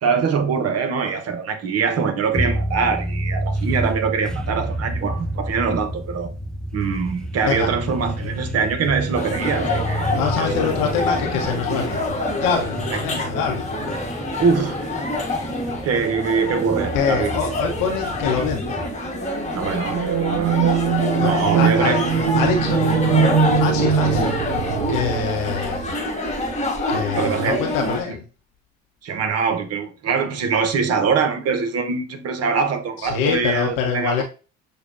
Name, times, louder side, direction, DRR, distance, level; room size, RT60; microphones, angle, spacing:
voice 1, 0.0-6.3 6.7-10.7 11.1-11.2 12.9-13.0 14.4-14.8 15.8-17.3 19.5-20.8 21.2-22.0 25.5-25.7 27.1-27.6 29.0-34.2, right 5 dB, 40° right, 0.9 m, -23 dB
sound 1, 2.3-19.1, right 1 dB, ahead, 0.5 m, -30 dB
sound 2, 9.1-28.0, left 2 dB, 15° left, 1.3 m, -26 dB
voice 2, 10.1-13.7 16.9-18.9 21.2-22.0 22.3-24.4 24.9-25.9 26.9-28.3 33.0-34.2, left 6 dB, 55° left, 0.8 m, -25 dB
sound 3, 19.9-25.9, right 6 dB, 85° right, 0.5 m, -21 dB
6.4 x 2.3 x 2.6 m
figure-of-eight pair, 55°, 40 cm